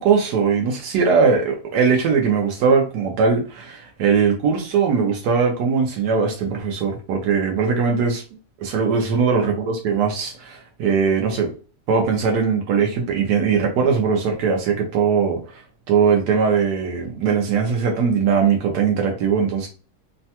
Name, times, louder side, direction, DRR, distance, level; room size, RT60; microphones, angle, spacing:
voice 1, 0.0-8.2 8.6-11.5 11.9-15.6 15.9-19.7, right 5 dB, 90° right, 1.2 m, -20 dB
3.2 x 2.2 x 2.7 m
omnidirectional pair, 1.7 m